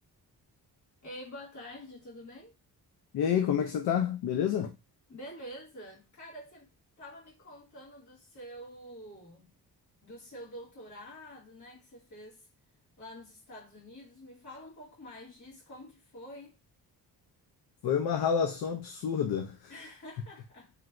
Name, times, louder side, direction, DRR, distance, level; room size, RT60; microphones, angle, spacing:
voice 1, 1.0-2.5 5.1-6.7 7.0-9.5 10.0-12.5 13.0-16.6 19.7-20.7, equal, 45° left, 1.9 m, -47 dB
voice 2, 3.1-4.7 17.8-19.7, left 8 dB, 70° left, 0.5 m, -29 dB
3.1 x 3.0 x 2.4 m
wide cardioid pair, 170°, 40 cm